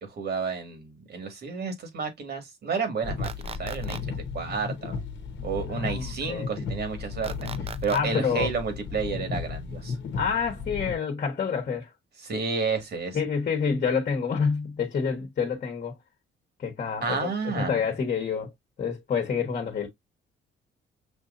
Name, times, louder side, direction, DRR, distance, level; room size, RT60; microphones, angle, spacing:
voice 1, 0.0-5.0 5.4-7.5 7.8-10.0 12.2-13.2 17.0-17.8, right 5 dB, 55° right, 1.9 m, -31 dB
sound 1, 3.0-10.9, left 5 dB, 65° left, 1.0 m, -34 dB
sound 2, 3.2-4.0 7.2-8.0, right 6 dB, 30° right, 0.5 m, -38 dB
voice 2, 5.7-6.5 7.9-8.5 10.2-11.9 13.1-15.9 16.6-17.3 17.6-18.5 18.8-19.9, left 6 dB, 45° left, 1.2 m, -28 dB
6.2 x 2.7 x 2.5 m
cardioid pair, 90°, 20 cm